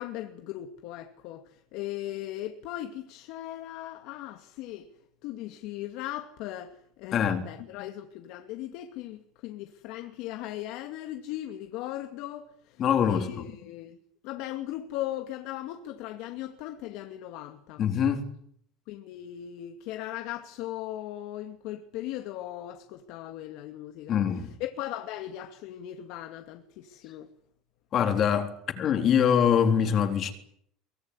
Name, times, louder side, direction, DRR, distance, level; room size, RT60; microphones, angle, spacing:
voice 1, 0.0-4.9 5.2-14.0 14.2-17.8 18.9-27.3, left 13 dB, 60° left, 2.4 m, -38 dB
voice 2, 7.1-7.5 12.8-13.5 17.8-18.2 24.1-24.5 27.9-30.3, left 8 dB, 35° left, 3.8 m, -24 dB
23.5 x 23.5 x 9.8 m
cardioid pair, 160°, 0 cm